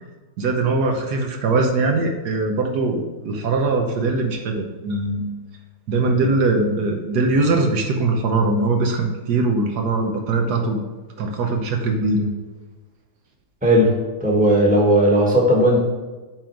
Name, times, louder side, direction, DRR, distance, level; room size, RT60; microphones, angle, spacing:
voice 1, 0.4-5.3 5.9-10.8 11.2-12.3, right 3 dB, 70° right, 3 dB, 1.3 m, -21 dB
voice 2, 13.6-13.9 14.2-15.8, right 1 dB, 5° right, -2 dB, 1.2 m, -16 dB
8.8 x 3.9 x 4.5 m, 1.3 s
omnidirectional pair, 1.9 m